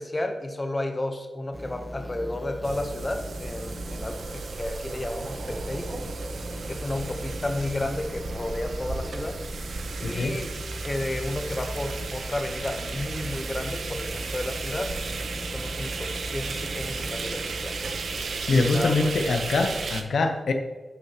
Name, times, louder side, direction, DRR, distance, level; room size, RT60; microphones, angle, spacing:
voice 1, 0.0-6.0 6.7-9.4 10.0-10.5 10.8-17.8 18.5-19.2, left 1 dB, 25° left, 6 dB, 0.8 m, -32 dB
sound 1, 1.5-19.1, equal, ahead, 1.5 m, -39 dB
sound 2, 2.6-20.0, right 4 dB, 85° right, 0.7 m, -35 dB
voice 2, 10.0-10.4 18.5-20.5, left 3 dB, 85° left, 5 dB, 0.8 m, -24 dB
11.0 x 6.5 x 2.9 m, 1.4 s
wide cardioid pair, 120°, 0 cm